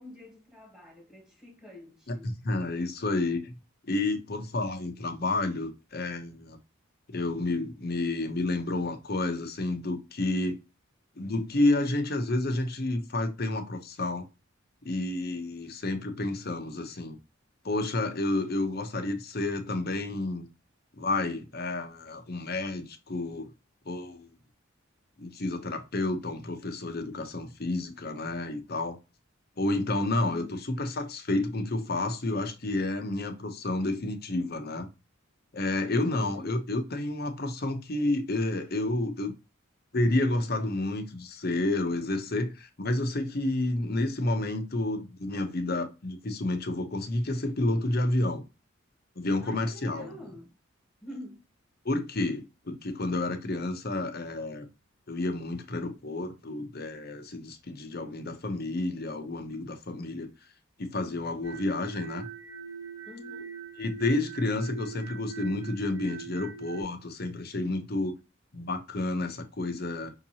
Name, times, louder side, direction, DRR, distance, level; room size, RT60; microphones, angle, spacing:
voice 1, 0.0-2.3 30.3-30.5 35.8-36.6 49.4-50.5 51.0-51.4 63.0-63.5, left 1 dB, 5° right, 1.6 m, -46 dB
voice 2, 2.1-3.5 3.9-6.6 7.1-10.6 11.2-14.3 14.8-17.2 17.6-20.5 21.0-23.5 23.9-24.3 25.2-29.0 29.6-34.9 35.5-39.4 39.9-48.4 49.2-50.2 51.8-54.7 55.1-60.3 60.8-62.3 63.8-68.2 68.5-70.1, left 2 dB, 50° left, 0.8 m, -30 dB
sound 1, 61.4-66.8, right 6 dB, 70° right, 1.4 m, -42 dB
5.8 x 2.9 x 2.7 m
head